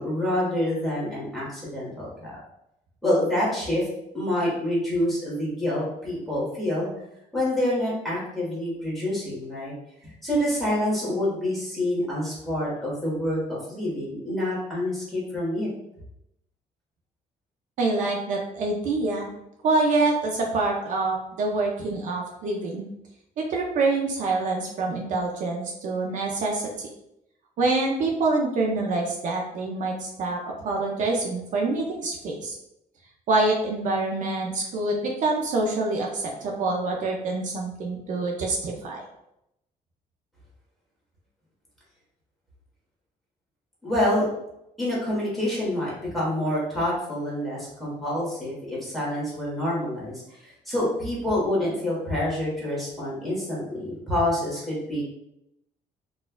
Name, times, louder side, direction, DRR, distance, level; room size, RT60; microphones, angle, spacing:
voice 1, 0.0-2.4 3.0-3.9 4.1-6.9 7.3-9.7 10.0-15.7 43.8-44.3 44.8-55.0, left 1 dB, ahead, -7 dB, 1.2 m, -27 dB
voice 2, 17.8-19.3 19.6-22.9 23.4-26.9 27.6-32.6 33.3-39.0, right 3 dB, 65° right, 0 dB, 0.5 m, -26 dB
4.1 x 2.3 x 2.2 m, 0.83 s
cardioid pair, 160°, 14 cm